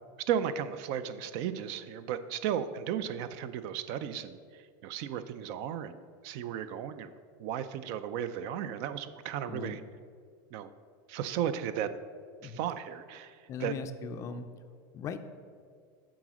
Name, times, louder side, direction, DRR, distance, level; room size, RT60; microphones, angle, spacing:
voice 1, 0.3-4.4 4.8-6.0 6.2-7.1 7.4-9.8 10.5-10.7 11.1-11.9 12.4-13.7, right 9 dB, 50° right, 13 dB, 0.4 m, -34 dB
voice 2, 9.4-9.8 12.4-12.6 13.5-14.5 14.9-15.2, left 6 dB, 30° left, 9 dB, 0.4 m, -39 dB
7.7 x 4.9 x 6.1 m, 2.1 s
supercardioid pair, 155°, 11 cm